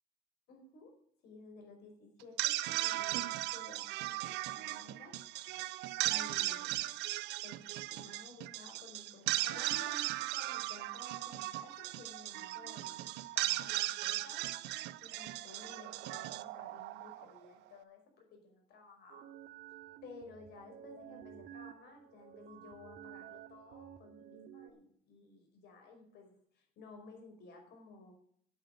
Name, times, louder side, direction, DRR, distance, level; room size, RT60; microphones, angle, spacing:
voice 1, 0.5-0.9 1.2-5.1 6.0-6.9 7.4-14.5 15.0-19.3 20.0-28.1, left 3 dB, 75° left, 3 dB, 5.0 m, -55 dB
sound 1, 2.2-17.5, right 17 dB, 90° right, 0.6 m, -37 dB
sound 2, 19.1-24.7, right 11 dB, 65° right, 1.4 m, -52 dB
9.1 x 8.3 x 9.0 m, 0.64 s
cardioid pair, 110°, 17 cm